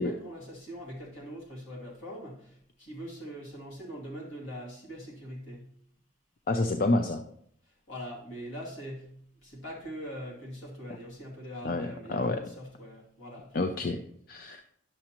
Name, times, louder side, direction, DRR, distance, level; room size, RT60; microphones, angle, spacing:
voice 1, 0.0-5.8 7.6-13.9, equal, 75° left, -3 dB, 2.5 m, -42 dB
voice 2, 6.5-7.2 11.6-12.4 13.5-14.0 14.3-14.6, left 2 dB, 45° left, 7 dB, 0.4 m, -28 dB
10.5 x 6.7 x 2.9 m, 0.66 s
head